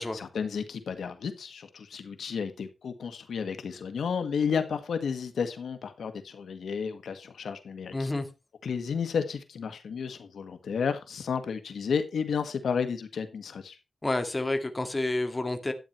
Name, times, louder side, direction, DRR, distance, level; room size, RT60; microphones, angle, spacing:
voice 1, 0.1-8.1 8.6-13.8, left 6 dB, 90° left, 1.6 m, -32 dB
voice 2, 7.9-8.3 14.0-15.7, left 2 dB, 20° left, 2.1 m, -29 dB
12.0 x 9.3 x 4.4 m
wide cardioid pair, 110°, 0 cm